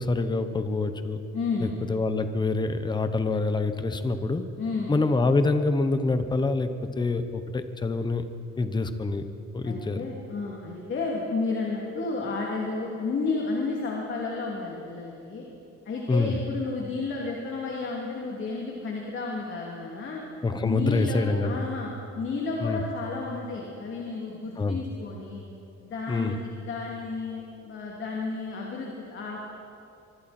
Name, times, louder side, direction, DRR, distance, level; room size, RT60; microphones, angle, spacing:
voice 1, 0.0-1.2 1.6-4.4 4.9-6.7 7.0-8.2 8.6-9.2 9.5-10.0 16.1-16.3 20.4-21.6 22.6-22.8 24.6-24.8 26.1-26.4, left 3 dB, 15° left, 9 dB, 1.0 m, -26 dB
voice 2, 1.3-1.7 4.6-4.9 9.6-15.4 15.8-20.2 20.6-21.9 22.2-25.4 25.8-29.4, left 3 dB, 40° left, -2 dB, 2.9 m, -32 dB
24.5 x 24.5 x 4.4 m, 2.7 s
cardioid pair, 150°, 29 cm